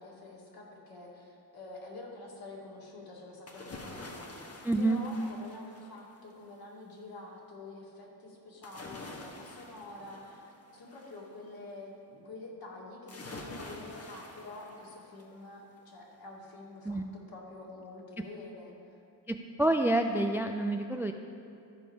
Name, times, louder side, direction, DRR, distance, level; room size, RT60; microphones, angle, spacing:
voice 1, 0.0-18.7, left 2 dB, 55° left, -3 dB, 2.4 m, -47 dB
sound 1, 3.5-6.3 8.6-11.2 13.1-15.4 15.8-15.9, left 2 dB, 35° left, 1.3 m, -47 dB
voice 2, 4.6-5.0 16.9-17.1 19.3-21.1, right 2 dB, 5° right, 6 dB, 0.3 m, -28 dB
13.5 x 5.1 x 4.6 m, 2.7 s
cardioid pair, 75°, 43 cm